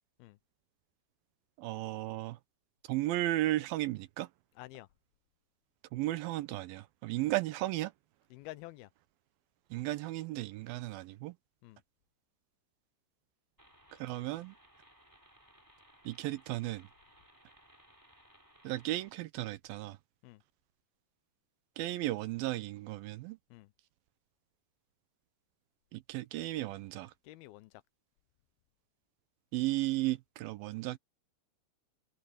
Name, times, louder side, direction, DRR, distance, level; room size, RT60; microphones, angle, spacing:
voice 1, 1.6-2.4 2.9-4.3 5.9-7.9 9.7-11.3 14.0-14.6 16.1-16.9 18.6-20.0 21.8-23.4 25.9-27.1 29.5-31.0, right 16 dB, 75° right, 2.4 m, -34 dB
voice 2, 4.6-4.9 7.2-7.3 8.3-8.9 11.6-11.8 20.2-20.4 23.5-23.7 27.2-27.7, left 17 dB, 80° left, 2.5 m, -49 dB
sound 1, 13.6-19.1, equal, 5° right, 3.5 m, -62 dB
omnidirectional pair, 4.5 m